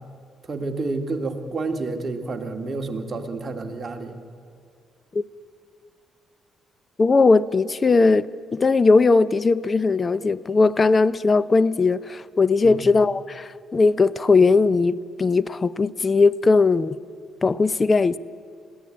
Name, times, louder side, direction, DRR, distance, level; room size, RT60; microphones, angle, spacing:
voice 1, 0.5-4.2 12.6-12.8, right 3 dB, 35° right, 4 dB, 2.0 m, -29 dB
voice 2, 7.0-8.3 8.5-17.0 17.4-18.2, left 4 dB, 30° left, 18 dB, 0.6 m, -19 dB
21.5 x 15.5 x 8.7 m, 2.3 s
cardioid pair, 90°, 0 cm